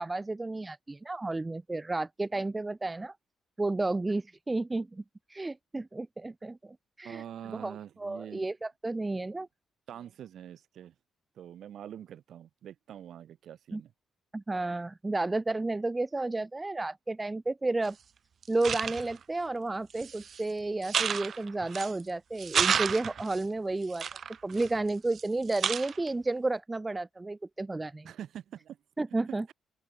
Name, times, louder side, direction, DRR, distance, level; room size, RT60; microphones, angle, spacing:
voice 1, 0.0-3.1 3.6-5.0 5.3-7.2 7.6-9.5 13.7-13.8 14.3-18.0 18.5-24.1 24.4-28.1 29.0-29.5, right 2 dB, 20° right, 0.6 m, -32 dB
voice 2, 7.0-8.5 9.4-9.5 9.9-10.9 11.3-13.9 28.0-28.8 29.3-29.5, right 10 dB, 65° right, 2.8 m, -45 dB
sound 1, 17.9-18.0 18.4-19.2 19.9-20.4 20.8-22.0 22.4-23.4 23.9-25.2 25.5-26.1, right 7 dB, 50° right, 0.3 m, -31 dB
open air
cardioid pair, 90°, 0 cm